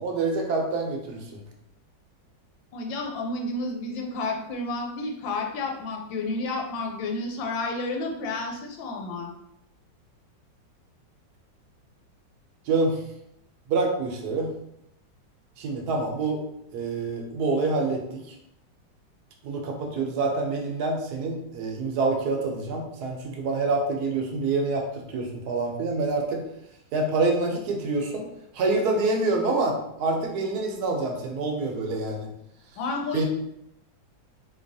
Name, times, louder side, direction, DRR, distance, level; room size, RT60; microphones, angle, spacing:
voice 1, 0.0-1.4 12.7-13.0 13.7-14.5 15.6-16.4 16.7-18.2 19.4-26.4 26.9-28.2 28.5-32.3 33.1-33.2, right 3 dB, 65° right, 2 dB, 1.0 m, -26 dB
voice 2, 2.7-9.3 32.8-33.3, left 2 dB, 85° left, 1 dB, 1.3 m, -31 dB
3.9 x 2.9 x 2.6 m, 0.80 s
omnidirectional pair, 2.1 m